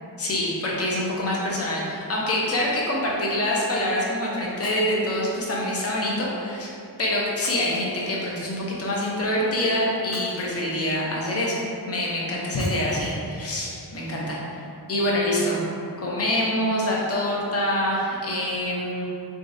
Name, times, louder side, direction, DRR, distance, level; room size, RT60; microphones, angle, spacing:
voice 1, 0.2-6.7 7.0-14.4 14.9-15.6 16.0-19.1, left 1 dB, 35° left, -4 dB, 0.7 m, -25 dB
Shatter, 4.6-5.1 7.4-8.3 10.1-10.9 12.6-13.2 13.8-13.9 14.2-14.3, equal, ahead, 0.8 m, -44 dB
3.7 x 3.6 x 2.6 m, 2.7 s
wide cardioid pair, 115°, 39 cm